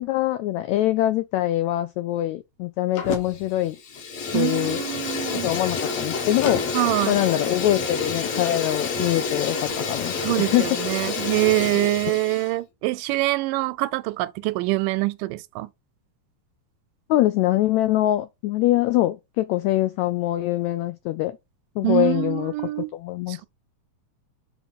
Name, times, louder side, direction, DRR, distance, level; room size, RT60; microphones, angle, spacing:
voice 1, 0.0-3.8 4.3-4.8 5.4-6.6 7.1-10.7 17.1-21.4 21.8-22.5 22.9-23.4, left 15 dB, 90° left, 1.6 m, -23 dB
Fire, 3.0-3.5 3.8-12.5, left 4 dB, 55° left, 2.3 m, -28 dB
voice 2, 4.3-5.5 6.7-7.2 10.2-15.7 21.8-22.9 23.3-23.5, right 18 dB, 85° right, 2.2 m, -24 dB
7.7 x 3.0 x 5.3 m
omnidirectional pair, 3.8 m